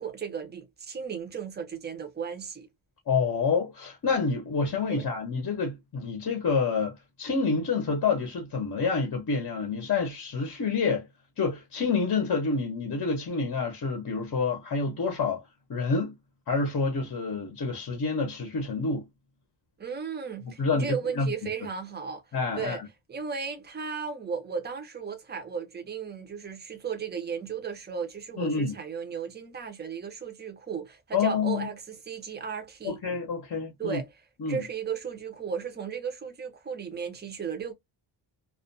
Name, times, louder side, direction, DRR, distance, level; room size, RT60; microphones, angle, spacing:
voice 1, 0.0-2.7 4.9-5.1 19.8-22.2 22.5-22.8 23.1-33.0 33.8-34.1 34.5-37.7, right 6 dB, 20° right, 0.5 m, -35 dB
voice 2, 3.1-11.1 11.4-15.4 15.7-16.1 16.5-19.1 20.6-21.3 22.3-22.9 28.4-28.7 31.1-31.7 32.8-34.0 34.4-34.6, left 4 dB, 45° left, 0.7 m, -28 dB
2.3 x 2.2 x 2.5 m
wide cardioid pair, 175°, 48 cm